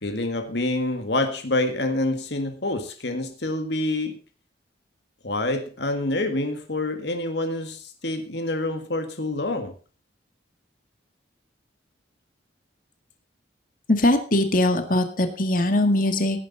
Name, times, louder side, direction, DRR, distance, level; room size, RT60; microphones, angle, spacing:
voice 1, 0.0-4.2 5.2-9.7, left 2 dB, 65° left, 7 dB, 1.7 m, -27 dB
voice 2, 13.9-16.4, left 1 dB, 45° left, 8 dB, 1.9 m, -21 dB
17.0 x 9.6 x 4.1 m, 0.36 s
head